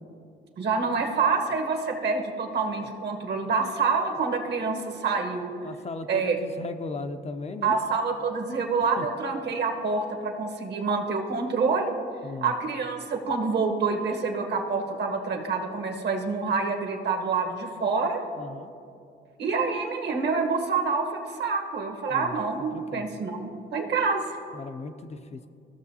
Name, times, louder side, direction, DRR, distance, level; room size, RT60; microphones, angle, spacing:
voice 1, 0.6-5.5 6.1-6.4 7.6-11.9 12.4-18.2 19.4-24.4, right 4 dB, 60° right, 4 dB, 1.2 m, -27 dB
voice 2, 5.6-7.8 9.0-9.1 12.2-12.5 18.4-18.7 22.1-22.4 22.7-23.2 24.5-25.5, left 3 dB, 35° left, 8 dB, 0.4 m, -37 dB
15.0 x 6.3 x 2.8 m, 2.4 s
cardioid pair, 90°, 20 cm